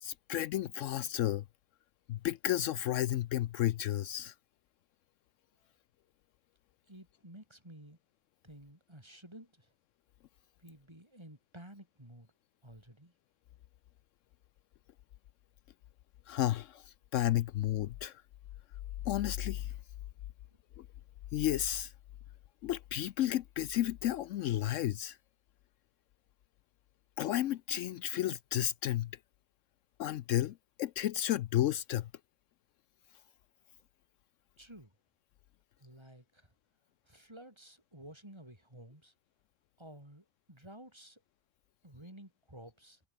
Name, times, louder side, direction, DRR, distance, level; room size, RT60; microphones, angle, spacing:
voice 1, 0.0-1.4 2.1-4.3 16.3-18.2 19.0-19.7 20.8-20.9 21.3-21.9 22.6-25.2 27.2-29.1 30.0-32.1, left 12 dB, 75° left, 0.9 m, -32 dB
voice 2, 6.9-8.0 8.4-9.7 10.6-12.3 12.6-13.1 34.6-34.9 35.8-36.5 37.0-39.1 39.8-41.2 41.8-43.0, right 1 dB, 20° right, 4.9 m, -53 dB
omnidirectional pair, 1.4 m